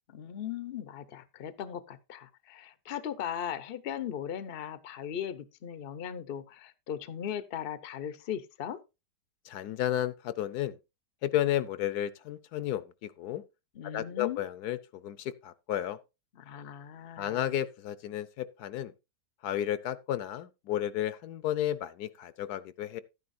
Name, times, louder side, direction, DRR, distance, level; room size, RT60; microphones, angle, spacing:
voice 1, 0.1-8.8 13.7-14.4 16.3-17.5, left 9 dB, 50° left, 0.7 m, -38 dB
voice 2, 9.5-10.8 11.2-13.4 13.9-16.0 17.2-18.9 19.4-23.0, left 12 dB, 70° left, 1.2 m, -32 dB
12.0 x 9.6 x 2.6 m
omnidirectional pair, 1.8 m